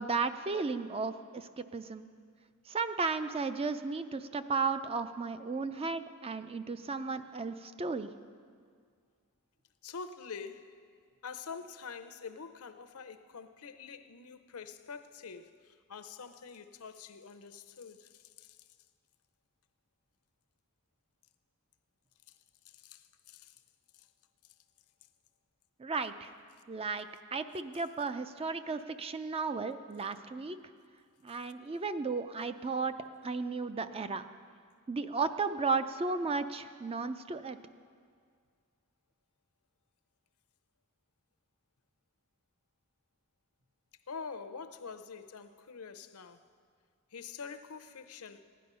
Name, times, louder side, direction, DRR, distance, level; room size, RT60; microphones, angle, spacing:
voice 1, 0.0-2.1 2.7-8.1 25.8-26.3 26.7-30.6 31.2-33.0 33.2-34.2 34.9-37.6, right 4 dB, 25° right, 0.4 m, -34 dB
voice 2, 9.8-10.9 11.2-18.6 22.3-22.4 22.6-23.5 23.9-24.1 44.1-46.4 47.1-48.4, left 5 dB, 80° left, 0.7 m, -46 dB
16.0 x 10.5 x 5.5 m
head